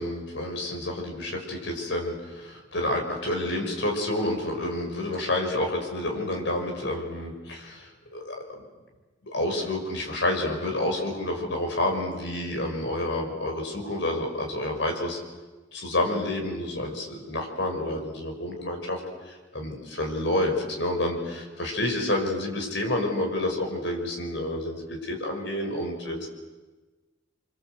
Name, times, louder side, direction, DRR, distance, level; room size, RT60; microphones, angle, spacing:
voice 1, 0.0-8.4 9.2-15.2 15.7-19.0 19.3-26.3, left 1 dB, 70° left, 2 dB, 5.9 m, -29 dB
29.5 x 25.0 x 8.1 m, 1.2 s
head